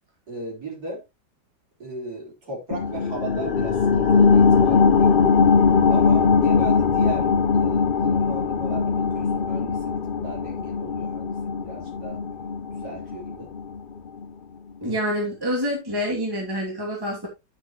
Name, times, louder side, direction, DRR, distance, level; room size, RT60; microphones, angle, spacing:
voice 1, 0.3-1.0 1.8-5.2 5.9-7.3 7.5-12.2 12.7-13.5, right 3 dB, 60° right, 4.9 m, -36 dB
sound 1, 2.7-13.8 14.2-14.3, left 5 dB, 75° left, 0.4 m, -20 dB
voice 2, 14.8-17.3, equal, 10° right, 2.6 m, -27 dB
10.5 x 6.4 x 3.0 m
omnidirectional pair, 1.9 m